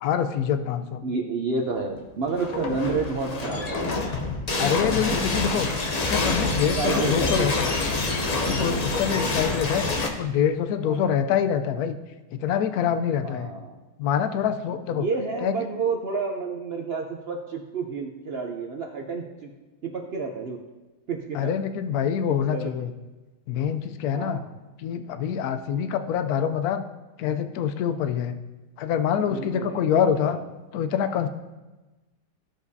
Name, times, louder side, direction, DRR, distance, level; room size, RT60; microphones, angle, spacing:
voice 1, 0.0-1.0 4.6-5.7 6.1-7.5 8.5-9.9 10.2-11.9 12.4-13.5 14.0-15.0 15.4-15.6 21.3-22.9 23.5-24.4 24.8-26.8 27.2-28.3 28.8-30.4 30.7-31.3, left 8 dB, 70° left, 8 dB, 1.0 m, -25 dB
voice 2, 1.0-4.0 6.7-7.5 8.6-9.0 10.8-11.2 13.2-13.8 14.9-19.5 19.8-20.6 21.1-21.6 22.5-22.8 24.1-24.5 29.2-30.5, right 4 dB, 65° right, 1 dB, 0.6 m, -30 dB
sound 1, 2.3-10.1, left 3 dB, 55° left, 0.4 m, -26 dB
15.0 x 5.1 x 2.7 m, 1.1 s
omnidirectional pair, 1.8 m